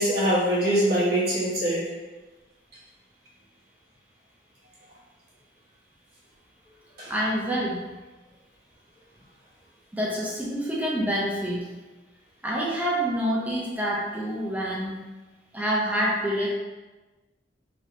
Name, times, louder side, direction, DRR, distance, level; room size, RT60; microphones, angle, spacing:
voice 1, 0.0-1.9 7.0-7.1, right 1 dB, 55° right, -8 dB, 1.3 m, -23 dB
voice 2, 7.1-7.8 9.9-11.7 12.4-15.0 15.5-16.5, equal, 10° right, -5 dB, 0.5 m, -27 dB
3.3 x 2.8 x 2.8 m, 1.2 s
head